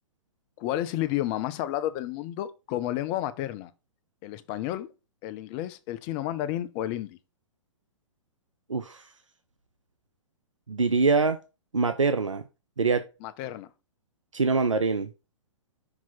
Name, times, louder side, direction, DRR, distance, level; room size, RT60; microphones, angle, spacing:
voice 1, 0.6-3.7 4.2-4.9 5.2-7.2 13.2-13.7, left 13 dB, 30° left, 0.6 m, -31 dB
voice 2, 8.7-9.0 10.7-11.4 11.7-12.4 12.8-13.1 14.3-15.1, right 4 dB, 85° right, 0.5 m, -24 dB
5.9 x 2.9 x 5.6 m
figure-of-eight pair, 110°, 16 cm